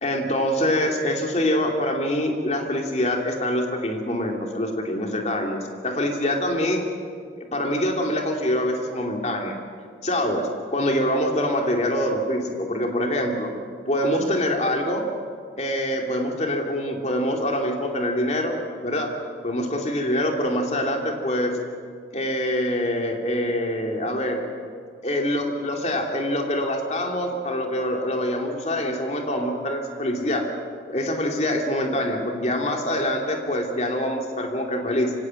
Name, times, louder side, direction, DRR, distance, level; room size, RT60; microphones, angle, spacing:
voice 1, 0.0-6.8 7.4-9.5 10.0-13.5 13.9-15.1 15.6-18.6 18.8-19.1 19.4-21.6 22.1-24.4 25.0-30.5 30.9-35.1, left 1 dB, 40° left, 1 dB, 2.7 m, -25 dB
26.0 x 17.0 x 7.8 m, 2.1 s
head